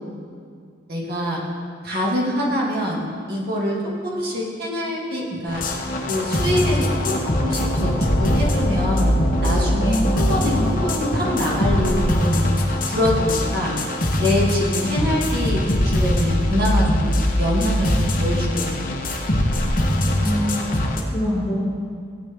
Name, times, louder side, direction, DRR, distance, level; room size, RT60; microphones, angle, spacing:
voice 1, 0.9-1.4 1.8-3.0 3.3-3.8 4.0-5.6 6.1-7.9 8.2-9.1 9.4-12.4 12.9-13.7 14.2-18.9, left 1 dB, 50° right, -4 dB, 2.3 m, -24 dB
sound 1, 5.5-21.0, left 1 dB, 40° left, 1.2 m, -22 dB
voice 2, 9.8-10.8 20.2-21.6, equal, ahead, -11 dB, 2.6 m, -26 dB
17.0 x 8.2 x 3.7 m, 2.2 s
head